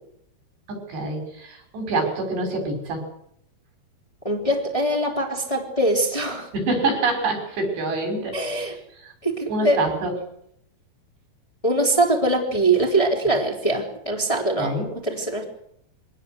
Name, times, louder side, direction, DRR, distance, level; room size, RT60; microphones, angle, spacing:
voice 1, 0.7-3.0 6.5-8.4 9.0-9.1 9.5-10.1 14.6-14.9, right 2 dB, 85° right, 3 dB, 8.1 m, -26 dB
voice 2, 4.2-6.5 8.3-8.7 9.2-9.8 11.6-15.4, right 2 dB, 10° left, 0 dB, 3.2 m, -22 dB
24.0 x 18.0 x 8.0 m, 0.73 s
omnidirectional pair, 4.8 m